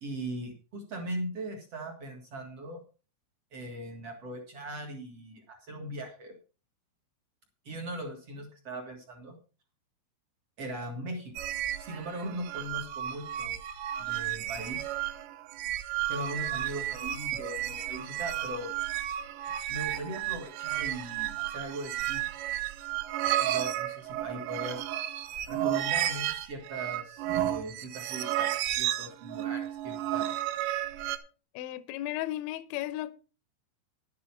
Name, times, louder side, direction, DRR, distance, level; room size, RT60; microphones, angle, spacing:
voice 1, 0.0-2.8 3.5-6.4 7.7-9.3 10.6-11.3 11.8-13.6 14.0-14.9 16.1-18.7 19.7-22.2 23.4-24.8 25.5-30.3, right 1 dB, 55° right, 1.7 m, -39 dB
sound 1, 11.4-31.2, right 12 dB, 80° right, 3.5 m, -32 dB
voice 2, 31.5-33.1, left 14 dB, 80° left, 2.8 m, -35 dB
11.5 x 9.5 x 4.6 m
omnidirectional pair, 5.7 m